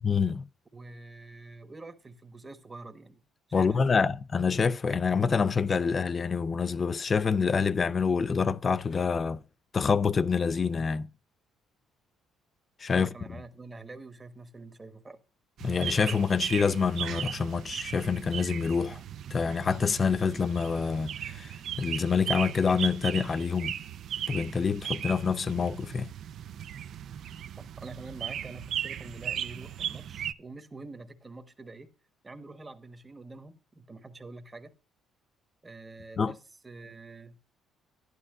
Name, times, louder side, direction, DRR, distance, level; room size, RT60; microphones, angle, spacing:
voice 1, 0.0-0.4 3.5-9.4 9.7-11.1 12.8-13.4 15.6-19.0 19.3-21.5 21.8-23.8 24.3-26.1 36.2-36.3, left 5 dB, 35° left, 0.4 m, -27 dB
voice 2, 0.7-3.2 3.5-4.0 12.9-15.2 27.6-31.9 32.2-34.7 35.6-36.4 36.6-37.6, right 3 dB, 20° right, 1.1 m, -46 dB
sound 1, 15.6-30.3, right 10 dB, 65° right, 0.4 m, -37 dB
11.0 x 11.0 x 2.4 m
cardioid pair, 95°, 0 cm